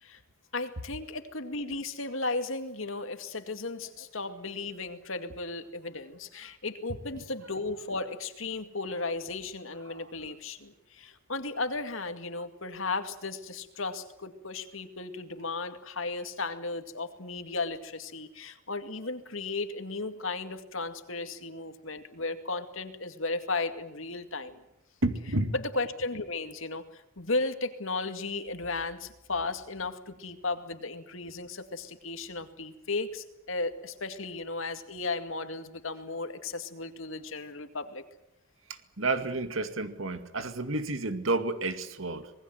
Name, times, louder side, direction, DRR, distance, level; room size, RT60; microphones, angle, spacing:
voice 1, 0.5-24.6 25.5-38.0, left 3 dB, 75° left, 8 dB, 2.3 m, -35 dB
voice 2, 25.0-25.5 38.7-42.3, right 2 dB, 75° right, 9 dB, 2.2 m, -31 dB
26.5 x 20.5 x 7.9 m, 0.88 s
head